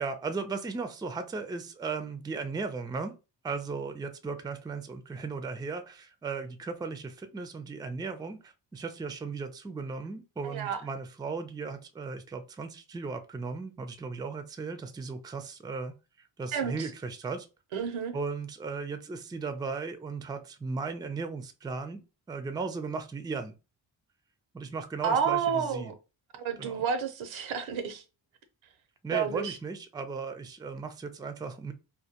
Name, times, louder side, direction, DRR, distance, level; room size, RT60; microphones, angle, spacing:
voice 1, 0.0-3.1 3.4-17.8 18.1-22.0 22.3-23.5 24.5-25.9 26.6-26.9 29.0-31.7, right 4 dB, 10° right, 0.3 m, -36 dB
voice 2, 10.4-10.8 16.5-16.8 17.7-18.2 25.0-25.9 26.3-28.0 29.1-29.5, right 7 dB, 80° right, 0.6 m, -30 dB
2.2 x 2.2 x 2.8 m
supercardioid pair, 50°, 47 cm